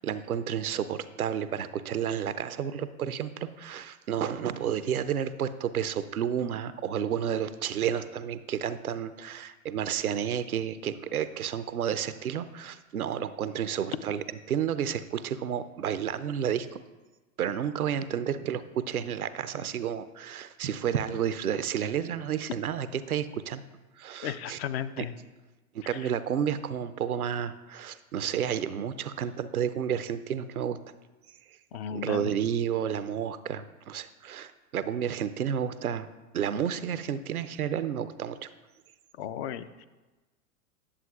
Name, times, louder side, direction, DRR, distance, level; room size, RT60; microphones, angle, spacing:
voice 1, 0.0-16.8 17.4-23.6 24.0-24.6 25.0-25.1 25.7-30.8 31.9-36.1 36.3-38.5, right 9 dB, 90° right, 13 dB, 0.5 m, -31 dB
voice 2, 24.2-25.1 31.7-32.3 39.2-39.9, left 9 dB, 45° left, 13 dB, 0.5 m, -35 dB
9.8 x 7.1 x 2.3 m, 1.2 s
figure-of-eight pair, 95°, 43 cm